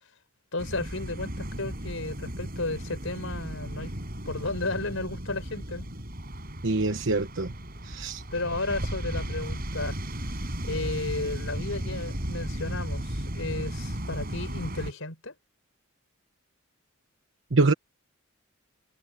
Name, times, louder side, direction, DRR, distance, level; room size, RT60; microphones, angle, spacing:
voice 1, 0.5-3.9 4.2-5.9 8.3-10.0 10.6-15.3, left 2 dB, 75° left, 5.1 m, -33 dB
sound 1, 0.6-14.9, equal, 45° right, 7.8 m, -35 dB
voice 2, 6.6-7.5 7.8-8.2 17.5-17.7, right 3 dB, 65° right, 1.1 m, -24 dB
head